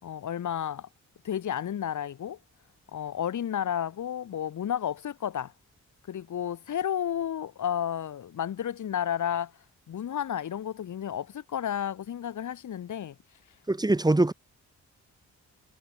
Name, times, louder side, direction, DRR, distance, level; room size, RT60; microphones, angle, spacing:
voice 1, 0.0-0.9 1.2-2.4 2.9-5.5 6.1-9.5 9.9-13.2, left 9 dB, 80° left, 6.7 m, -32 dB
voice 2, 13.7-14.3, right 2 dB, 15° right, 3.1 m, -22 dB
wide cardioid pair, 135°, 30 cm